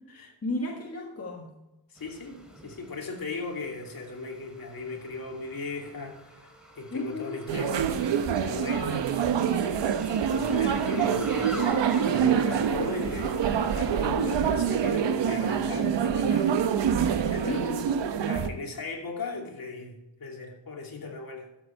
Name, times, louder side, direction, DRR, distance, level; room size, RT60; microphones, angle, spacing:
voice 1, 0.4-1.5 6.9-7.5 10.9-11.2 17.4-18.1, left 2 dB, 35° left, 0 dB, 1.6 m, -34 dB
voice 2, 1.9-6.4 6.8-9.3 10.2-16.6 17.0-17.8 18.3-21.5, left 3 dB, 55° left, 0 dB, 2.8 m, -37 dB
sound 1, 2.0-15.3, right 1 dB, ahead, 2.7 m, -44 dB
sound 2, 7.5-18.5, right 8 dB, 85° right, 0.9 m, -26 dB
12.5 x 8.1 x 4.5 m, 0.94 s
cardioid pair, 90°, 43 cm